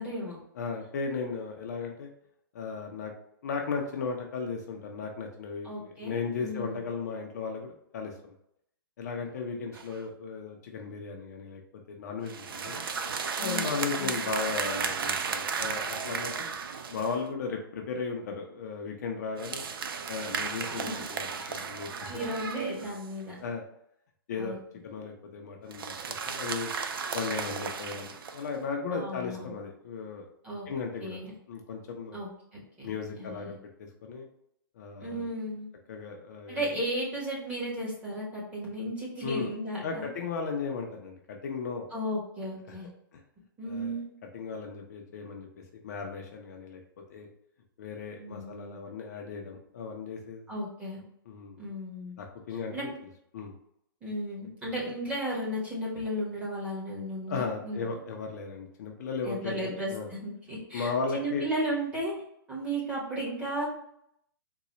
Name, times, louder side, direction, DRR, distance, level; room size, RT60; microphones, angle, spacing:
voice 1, 0.0-0.4 5.6-6.8 13.4-14.2 20.7-21.0 21.3-21.7 22.1-23.3 24.4-24.6 28.9-29.5 30.4-30.7 31.0-31.3 32.1-32.9 33.2-33.5 35.0-35.7 36.5-40.1 41.9-42.9 43.6-44.1 48.2-48.8 50.5-51.0 51.6-52.2 52.7-52.9 54.0-57.8 59.2-62.1 62.5-63.7, right 1 dB, 10° right, -6 dB, 1.1 m, -35 dB
voice 2, 0.5-2.1 2.5-3.1 3.4-8.1 9.0-11.6 11.9-12.8 13.4-16.5 16.9-19.6 20.1-22.2 23.4-23.6 24.3-25.9 26.3-26.7 27.1-30.3 30.7-31.2 31.5-32.2 32.8-34.3 34.8-35.3 35.9-36.7 39.2-39.5 39.8-41.9 42.7-42.8 43.1-43.2 43.7-44.0 44.3-45.5 45.8-46.8 47.1-47.3 47.8-50.5 51.3-51.6 52.2-52.9 53.3-53.5 57.3-60.1 60.7-61.4, left 5 dB, 45° left, 1 dB, 0.6 m, -36 dB
sound 1, 9.7-10.0 12.2-17.2 19.4-23.2 25.7-28.5, right 5 dB, 75° right, 0.4 m, -34 dB
3.9 x 2.2 x 3.0 m, 0.75 s
hypercardioid pair, 160°, 12 cm